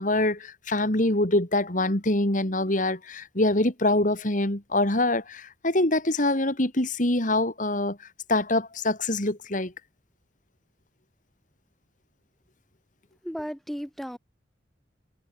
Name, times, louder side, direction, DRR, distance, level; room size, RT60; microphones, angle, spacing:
voice 1, 0.0-8.0 8.3-9.7, left 1 dB, 45° left, 3.0 m, -24 dB
voice 2, 13.2-14.2, equal, ahead, 3.2 m, -34 dB
head